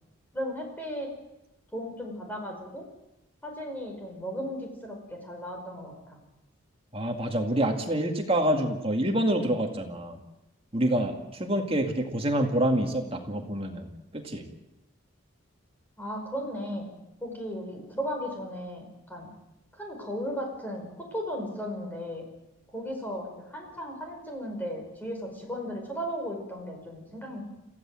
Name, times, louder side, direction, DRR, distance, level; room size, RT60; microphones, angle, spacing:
voice 1, 0.3-1.1 1.7-2.8 3.4-6.2 16.0-16.9 17.2-19.3 19.7-22.3 22.7-27.4, equal, 10° left, 1 dB, 5.3 m, -36 dB
voice 2, 6.9-10.2 10.7-13.9 14.1-14.5, right 1 dB, 25° right, 3 dB, 2.2 m, -27 dB
27.0 x 16.0 x 7.7 m, 0.93 s
head